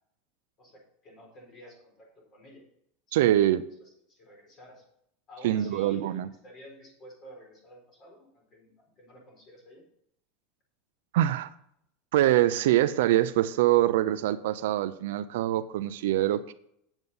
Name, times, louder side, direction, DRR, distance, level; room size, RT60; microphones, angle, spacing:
voice 1, 0.6-2.6 3.8-4.8 5.3-8.7 9.0-9.8, equal, 30° left, 0 dB, 4.2 m, -51 dB
voice 2, 3.1-3.6 5.4-6.3 11.1-11.5 12.1-16.5, right 13 dB, 75° right, 12 dB, 0.6 m, -24 dB
8.9 x 8.0 x 5.5 m, 0.72 s
supercardioid pair, 170°, 0 cm